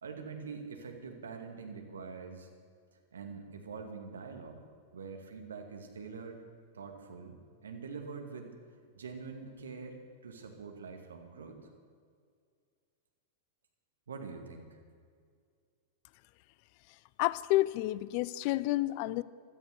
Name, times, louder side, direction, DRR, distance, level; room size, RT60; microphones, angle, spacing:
voice 1, 0.0-2.5 3.1-6.4 6.7-8.6 8.9-10.0 10.2-11.6 14.1-14.8, right 5 dB, 75° right, 4 dB, 2.3 m, -45 dB
voice 2, 17.2-19.2, left 17 dB, 50° left, 19 dB, 0.5 m, -29 dB
15.5 x 13.0 x 6.6 m, 2.1 s
figure-of-eight pair, 95°, 0 cm